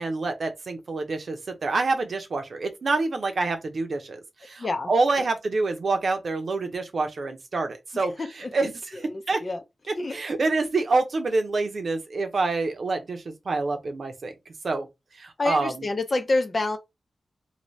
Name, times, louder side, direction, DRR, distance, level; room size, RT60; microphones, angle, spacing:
voice 1, 0.0-9.4 9.9-14.9 15.1-15.8, right 3 dB, 65° right, 0.8 m, -27 dB
voice 2, 4.6-4.9 7.9-8.5 9.0-9.6 10.0-10.2 15.4-16.8, left 2 dB, 50° left, 0.7 m, -27 dB
2.8 x 2.7 x 3.2 m
cardioid pair, 55°, 0 cm